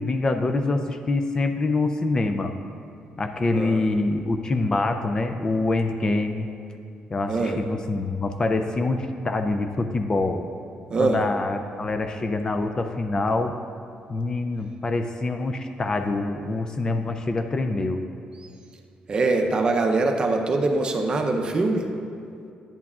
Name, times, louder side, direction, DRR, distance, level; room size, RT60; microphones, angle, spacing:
voice 1, 0.0-2.5 3.2-6.5 7.1-10.4 11.0-13.5 14.1-18.0, left 2 dB, 25° left, 6 dB, 0.3 m, -25 dB
voice 2, 3.5-3.8 7.3-7.6 10.9-11.2 19.1-21.9, right 3 dB, 30° right, 3 dB, 0.6 m, -23 dB
10.5 x 8.4 x 2.4 m, 2.5 s
cardioid pair, 150°, 3 cm